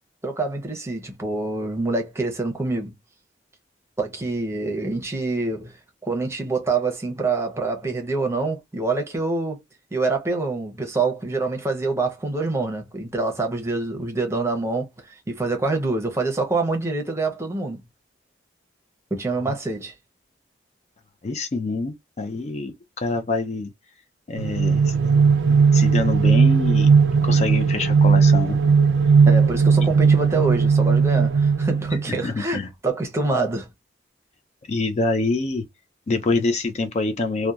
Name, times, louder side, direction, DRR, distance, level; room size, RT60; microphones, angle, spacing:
voice 1, 0.2-2.9 4.0-5.7 6.0-9.6 9.9-17.8 19.1-19.9 29.3-33.7, right 3 dB, 15° right, 0.7 m, -26 dB
voice 2, 21.2-23.7 24.3-24.9 25.7-26.9 27.2-28.6 32.2-32.7 34.7-35.7 36.1-37.5, left 3 dB, 40° left, 0.4 m, -25 dB
sound 1, 24.4-32.3, right 5 dB, 85° right, 0.4 m, -17 dB
2.8 x 2.1 x 2.3 m
head